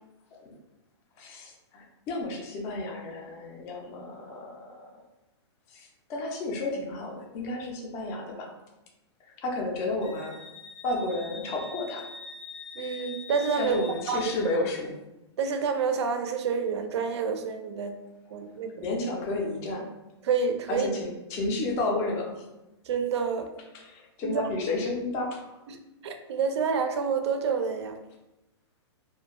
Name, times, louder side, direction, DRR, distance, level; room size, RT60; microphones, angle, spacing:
voice 1, 1.2-5.0 5.7-8.5 9.4-10.3 10.8-12.0 13.6-14.9 18.8-19.8 20.7-22.4 23.7-25.4, left 2 dB, 20° left, 0 dB, 0.4 m, -32 dB
Wind instrument woodwind instrument, 10.0-14.6, left 4 dB, 85° left, 0.7 m, -44 dB
voice 2, 12.8-13.7 14.1-14.3 15.4-17.9 18.3-18.9 20.2-20.9 22.9-23.5 24.2-24.4 25.7-25.8 26.0-28.0, right 5 dB, 70° right, 7 dB, 0.4 m, -28 dB
2.4 x 2.1 x 2.9 m, 0.97 s
hypercardioid pair, 160°, 15 cm